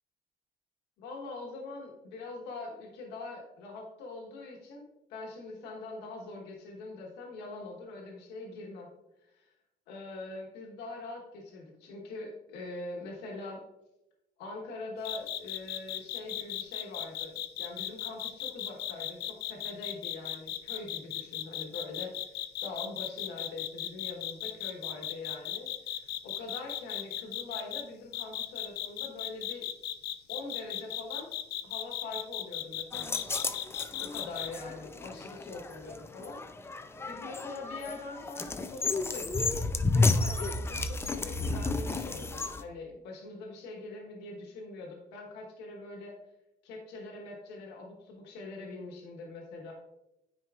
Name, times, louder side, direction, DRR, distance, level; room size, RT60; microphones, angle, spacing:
voice 1, 1.0-8.9 9.2-9.5 9.9-13.6 14.4-29.7 30.3-31.3 31.6-33.2 34.0-39.6 39.9-46.1 46.6-49.7, left 3 dB, 90° left, 0 dB, 1.3 m, -43 dB
sound 1, 15.0-27.8 28.1-34.5, left 12 dB, 75° left, 0.5 m, -36 dB
sound 2, 32.9-42.6, left 3 dB, 15° left, 0.4 m, -32 dB
9.1 x 4.5 x 2.4 m, 0.91 s
cardioid pair, 110°, 17 cm